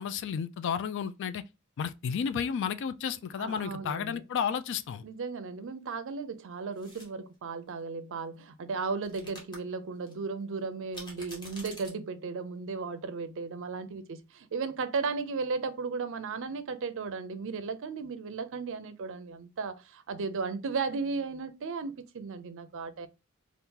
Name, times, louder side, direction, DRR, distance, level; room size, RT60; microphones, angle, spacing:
voice 1, 0.0-1.4 1.8-5.0, left 7 dB, 55° left, 0.3 m, -32 dB
voice 2, 3.4-4.2 5.0-23.1, right 4 dB, 60° right, 0.5 m, -35 dB
sound 1, 6.7-7.1 9.0-9.6 10.1-10.2 10.9-11.9, left 1 dB, 20° left, 1.0 m, -46 dB
2.8 x 2.4 x 3.6 m
head